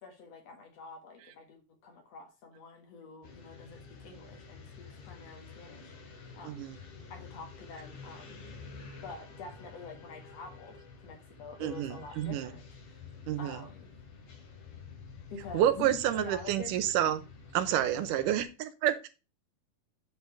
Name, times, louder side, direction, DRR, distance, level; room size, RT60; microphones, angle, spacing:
voice 1, 0.0-5.9 6.3-6.7 7.1-8.4 9.0-13.0 13.4-13.9 15.3-16.8, left 4 dB, 60° left, 2.3 m, -47 dB
sound 1, 3.2-18.5, left 5 dB, 80° left, 3.5 m, -50 dB
voice 2, 6.5-6.8 11.6-12.5 13.3-13.6 15.5-17.2 17.5-19.1, right 11 dB, 85° right, 2.2 m, -29 dB
8.3 x 4.5 x 4.6 m
omnidirectional pair, 3.7 m